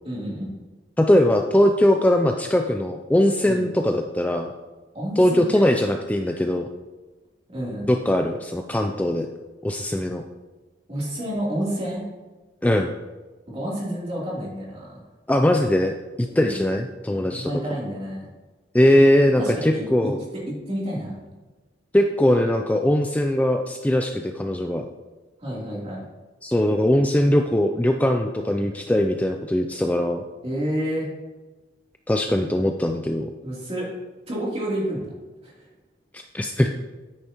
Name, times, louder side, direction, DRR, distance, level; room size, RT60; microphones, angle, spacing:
voice 1, 0.0-0.5 3.4-3.6 4.9-5.8 7.5-7.9 10.9-12.0 13.5-15.0 16.3-16.7 17.3-18.3 19.4-20.1 20.5-21.2 25.4-26.0 30.4-31.1 33.4-33.8 34.3-35.1 35.4-35.5, equal, 35° right, -5 dB, 3.2 m, -29 dB
voice 2, 1.0-4.5 5.2-6.7 7.9-9.3 9.6-10.2 12.6-12.9 15.3-17.5 18.7-20.2 21.9-24.9 26.4-30.2 32.1-33.3 36.3-36.7, left 1 dB, 10° left, 4 dB, 0.4 m, -20 dB
9.8 x 8.8 x 3.0 m, 1.2 s
head